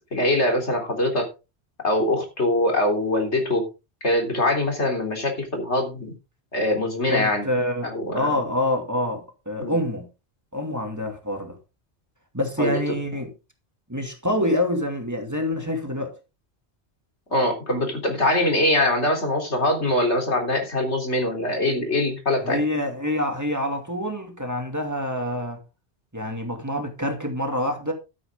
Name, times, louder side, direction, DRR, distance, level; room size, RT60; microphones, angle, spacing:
voice 1, 0.1-1.3 1.8-3.7 4.0-6.1 6.5-7.4 7.8-8.4 9.6-9.8 12.6-13.0 17.3-22.6, left 1 dB, 90° left, 4.0 m, -23 dB
voice 2, 7.1-10.1 10.5-11.6 12.3-13.3 13.9-16.2 22.4-25.6 26.1-27.9, left 1 dB, 15° right, 2.4 m, -26 dB
12.5 x 9.2 x 3.7 m
omnidirectional pair, 1.1 m